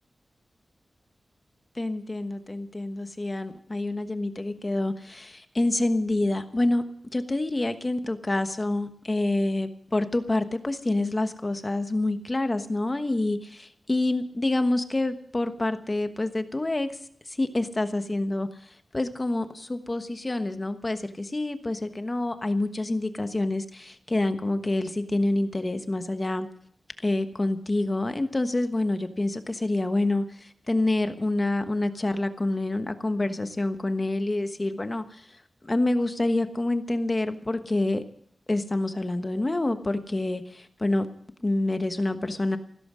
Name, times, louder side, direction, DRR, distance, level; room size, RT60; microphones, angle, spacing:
voice 1, 1.7-6.8 7.1-16.9 17.3-26.5 27.0-35.3 35.6-38.0 38.5-41.1 41.4-42.6, left 2 dB, 25° left, 8 dB, 1.2 m, -27 dB
15.5 x 13.0 x 6.3 m, 0.62 s
wide cardioid pair, 95°, 0 cm